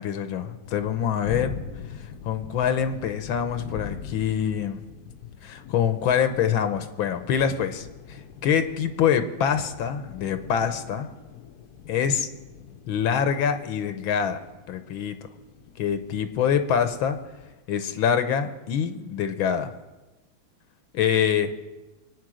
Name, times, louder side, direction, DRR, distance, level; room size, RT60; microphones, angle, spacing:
voice 1, 0.0-1.6 2.2-4.8 5.4-11.1 11.9-12.3 12.9-14.4 14.7-15.1 15.8-17.2 17.7-19.7 20.9-21.5, left 8 dB, 80° left, 9 dB, 1.7 m, -25 dB
sound 1, 0.6-17.5, left 7 dB, 60° left, 1.2 m, -43 dB
23.5 x 9.0 x 6.3 m, 1.1 s
omnidirectional pair, 2.2 m